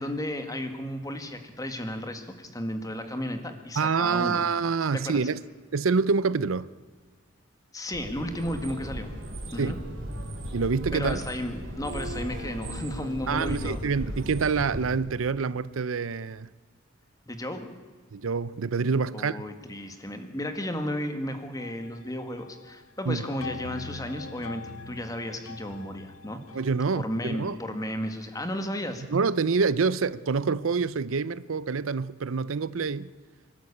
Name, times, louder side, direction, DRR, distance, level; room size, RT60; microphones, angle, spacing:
voice 1, 0.0-4.4 4.9-5.2 7.7-9.1 9.5-9.8 10.9-13.8 17.3-17.7 19.1-26.4 26.9-29.0, left 1 dB, 20° left, 1.9 m, -34 dB
voice 2, 3.8-5.4 5.7-6.7 9.6-9.7 10.5-11.2 13.3-16.5 18.1-19.4 23.1-23.2 26.5-27.6 29.1-33.1, right 5 dB, 85° right, 0.6 m, -26 dB
sound 1, 7.9-15.0, equal, 70° right, 3.8 m, -36 dB
sound 2, 21.6-22.8 23.1-27.1, left 4 dB, 90° left, 0.8 m, -43 dB
26.0 x 12.5 x 8.6 m
head